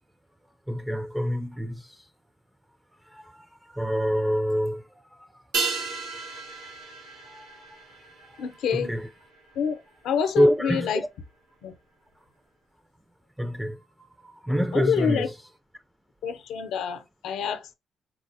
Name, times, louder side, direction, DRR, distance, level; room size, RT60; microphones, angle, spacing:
voice 1, 0.7-2.1 3.1-5.4 7.3-7.6 8.3-8.4 8.7-9.1 10.2-11.1 13.4-15.4, equal, 5° right, 0.3 m, -27 dB
sound 1, 5.5-10.3 10.5-10.6, right 4 dB, 90° right, 1.1 m, -34 dB
voice 2, 8.4-8.9 9.6-9.8 10.0-11.0 11.6-11.7 14.7-15.3 16.2-17.7, left 7 dB, 80° left, 0.6 m, -27 dB
4.2 x 2.0 x 2.6 m
cardioid pair, 90°, 0 cm